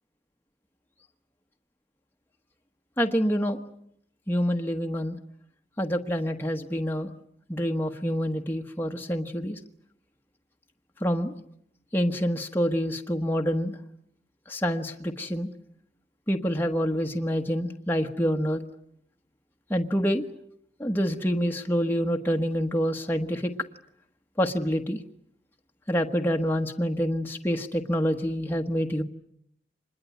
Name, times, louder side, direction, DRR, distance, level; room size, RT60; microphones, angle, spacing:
voice 1, 3.0-3.6 4.3-5.2 5.8-7.1 7.5-9.6 11.0-11.3 11.9-13.8 14.5-15.5 16.3-18.6 19.7-20.2 20.8-23.5 24.4-25.0 25.9-29.0, equal, 10° left, 2 dB, 1.2 m, -27 dB
26.0 x 21.5 x 9.3 m, 0.72 s
head